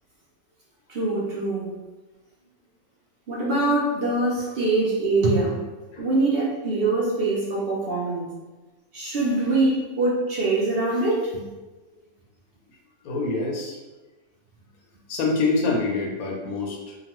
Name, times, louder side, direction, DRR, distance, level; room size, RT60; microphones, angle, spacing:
voice 1, 0.9-1.7 3.3-5.6 6.0-8.3 8.9-11.4, right 2 dB, 60° right, -5 dB, 0.6 m, -23 dB
voice 2, 13.0-13.8 15.1-17.0, left 3 dB, 75° left, 0 dB, 1.0 m, -26 dB
2.9 x 2.2 x 2.9 m, 1.2 s
omnidirectional pair, 1.6 m